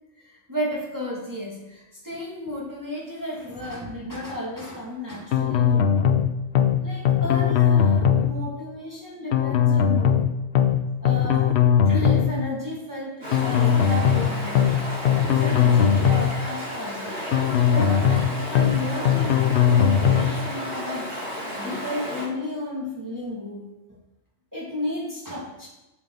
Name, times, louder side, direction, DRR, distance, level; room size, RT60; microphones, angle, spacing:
voice 1, 0.2-6.0 6.8-10.3 11.0-11.4 11.8-14.8 15.2-17.2 17.7-19.4 19.7-21.1 21.6-23.7 24.5-25.7, left 1 dB, 15° right, -5 dB, 2.1 m, -33 dB
sound 1, 5.3-6.2 6.5-6.8 7.0-8.3 9.3-10.2 10.5-10.8 11.0-12.3 13.3-14.2 14.5-14.8 15.0-16.3 17.3-18.2 18.5-18.8 19.0-20.3, left 8 dB, 70° left, 0.9 m, -19 dB
Stream, 13.2-22.2, equal, 65° right, 3.8 m, -33 dB
8.7 x 7.4 x 3.8 m, 0.99 s
omnidirectional pair, 1.2 m